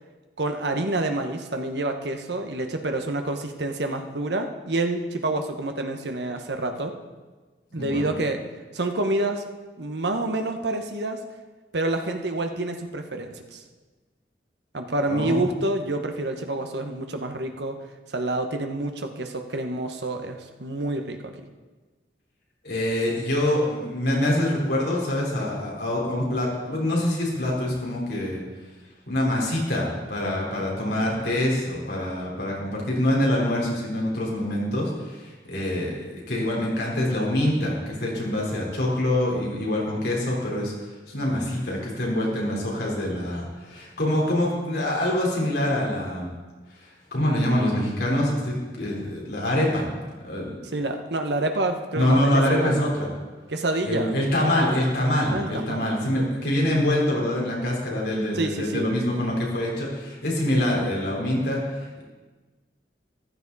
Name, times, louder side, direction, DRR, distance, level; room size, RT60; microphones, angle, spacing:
voice 1, 0.4-6.9 7.7-8.4 8.7-9.4 9.8-11.2 11.7-13.6 14.7-17.8 18.1-21.3 50.7-52.9 53.5-54.2 55.3-55.9 58.3-58.9, right 2 dB, 75° right, 5 dB, 1.2 m, -28 dB
voice 2, 7.8-8.1 15.1-15.4 22.6-28.4 29.1-40.7 41.1-46.3 46.8-49.9 50.2-50.6 51.9-53.1 53.9-62.0, left 1 dB, 65° left, -3 dB, 4.0 m, -25 dB
14.5 x 13.0 x 4.1 m, 1.3 s
head